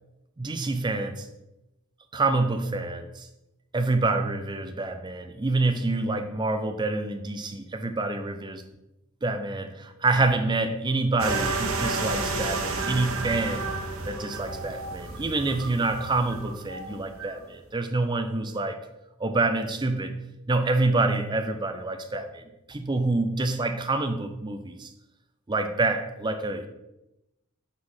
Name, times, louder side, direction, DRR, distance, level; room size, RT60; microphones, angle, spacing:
voice 1, 0.4-1.3 2.1-3.3 3.7-8.6 9.2-13.7 14.1-18.8 19.2-20.2 20.5-24.9 25.5-26.7, right 2 dB, 20° right, 8 dB, 0.5 m, -27 dB
sound 1, 11.2-17.4, right 3 dB, 75° right, 0.8 m, -31 dB
4.8 x 4.2 x 5.5 m, 0.92 s
head